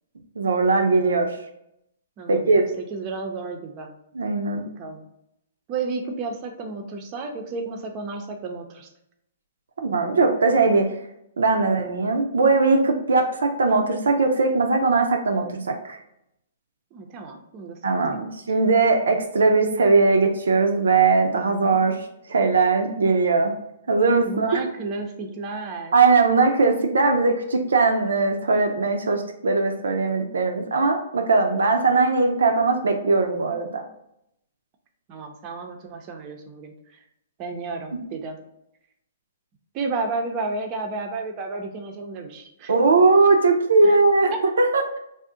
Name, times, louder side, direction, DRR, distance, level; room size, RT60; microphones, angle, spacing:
voice 1, 0.4-1.3 2.3-2.6 4.1-4.7 9.8-10.9 11.4-16.0 17.8-21.9 22.3-23.5 23.9-24.6 25.9-33.8 42.7-45.0, right 3 dB, 85° right, 4 dB, 0.4 m, -20 dB
voice 2, 2.2-3.9 4.8-5.0 5.7-8.9 16.9-18.2 24.2-26.0 35.1-36.7 37.4-38.4 39.7-42.7 43.8-44.0 44.3-44.4, right 3 dB, 35° right, 3 dB, 0.5 m, -32 dB
2.5 x 2.0 x 3.7 m, 0.79 s
hypercardioid pair, 135°, 0 cm